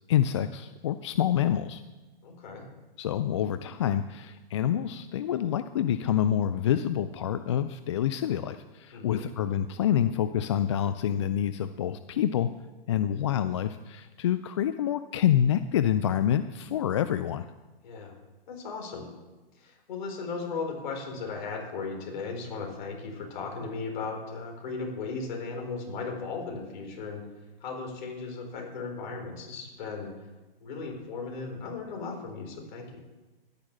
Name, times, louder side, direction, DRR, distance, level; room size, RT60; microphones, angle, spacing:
voice 1, 0.1-1.8 3.0-12.5 12.9-17.5, left 10 dB, 30° left, 11 dB, 0.4 m, -27 dB
voice 2, 2.2-2.7 8.9-9.3 17.8-18.1 18.5-19.1 19.5-27.2 27.6-30.3 30.6-33.0, left 4 dB, 50° left, 2 dB, 4.6 m, -36 dB
11.5 x 10.5 x 7.4 m, 1.1 s
hypercardioid pair, 135°, 30 cm